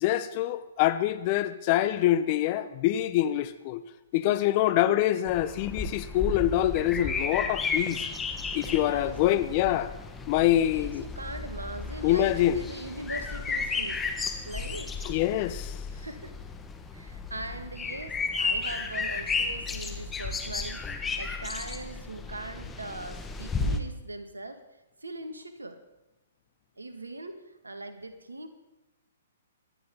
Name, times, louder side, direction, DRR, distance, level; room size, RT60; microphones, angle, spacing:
voice 1, 0.0-3.8 4.1-8.0 8.5-9.9 10.3-11.0 12.0-12.6 15.1-15.7, left 13 dB, 40° left, 0.9 m, -25 dB
voice 2, 4.1-4.5 8.7-9.2 10.4-14.0 14.4-14.9 15.9-16.4 16.9-24.6 25.0-25.8 26.8-28.5, right 2 dB, 90° right, 1.9 m, -41 dB
sound 1, 5.3-23.8, left 4 dB, 15° left, 1.5 m, -34 dB
24.0 x 10.5 x 3.9 m
figure-of-eight pair, 125°, 0 cm